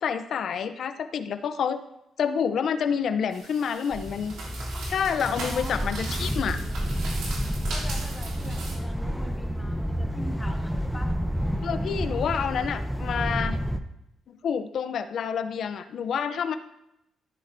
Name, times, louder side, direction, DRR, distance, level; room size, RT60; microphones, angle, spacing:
voice 1, 0.0-1.8 2.2-4.3 4.9-6.6 11.6-13.6 14.3-16.6, left 7 dB, 60° left, 10 dB, 0.6 m, -28 dB
sound 1, 3.3-8.8, right 2 dB, 80° right, 2.9 m, -38 dB
sound 2, 3.9-13.8, equal, ahead, 0.7 m, -30 dB
voice 2, 5.4-6.0 7.7-11.1, left 1 dB, 15° left, 2 dB, 1.6 m, -42 dB
13.0 x 10.5 x 2.7 m, 0.86 s
cardioid pair, 90°, 0 cm